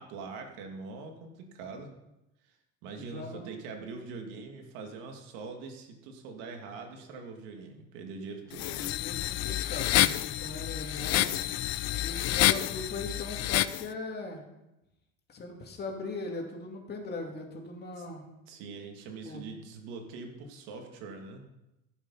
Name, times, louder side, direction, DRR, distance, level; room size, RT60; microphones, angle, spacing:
voice 1, 0.0-1.9 2.5-2.6 2.8-8.8 18.0-18.1 18.5-21.5, right 4 dB, 90° right, 3 dB, 2.3 m, -43 dB
voice 2, 2.9-3.5 8.5-11.4 12.0-14.4 15.3-18.3 19.2-19.4, left 2 dB, 30° left, 1 dB, 2.6 m, -40 dB
sound 1, 8.5-13.8, left 15 dB, 55° left, 0.5 m, -28 dB
15.0 x 7.3 x 5.6 m, 0.94 s
cardioid pair, 130°, 31 cm